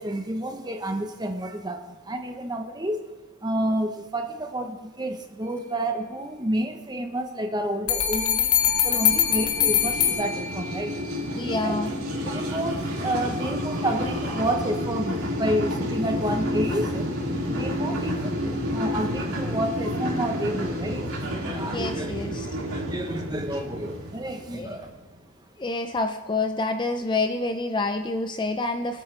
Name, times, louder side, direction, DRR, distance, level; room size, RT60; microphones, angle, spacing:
voice 1, 0.0-3.1 3.4-11.8 12.2-17.1 17.5-22.1 22.8-24.9, right 1 dB, 20° right, 5 dB, 0.9 m, -30 dB
sound 1, 7.9-11.0, left 9 dB, 75° left, 1.4 m, -23 dB
sound 2, 8.3-25.0, equal, 75° right, 2.9 m, -30 dB
voice 2, 11.3-12.0 21.7-22.5 24.5-24.8 25.6-29.0, left 2 dB, 20° left, 6 dB, 0.5 m, -28 dB
23.5 x 8.7 x 3.3 m, 1.2 s
head